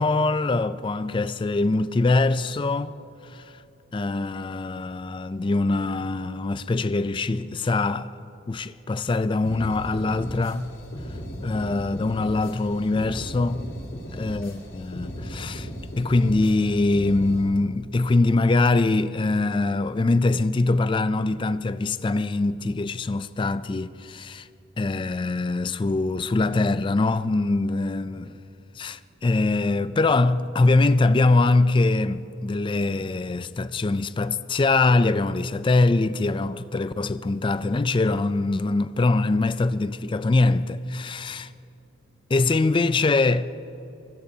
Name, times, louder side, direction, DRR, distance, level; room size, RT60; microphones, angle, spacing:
voice 1, 0.0-2.9 3.2-3.5 3.9-8.1 8.5-10.7 11.4-13.7 14.1-15.7 16.0-24.5 24.8-28.2 28.8-41.5 42.3-43.4, left 3 dB, 25° left, 0.3 m, -23 dB
sound 1, 9.4-17.4, equal, 65° left, 4.2 m, -37 dB
28.0 x 17.0 x 2.8 m
head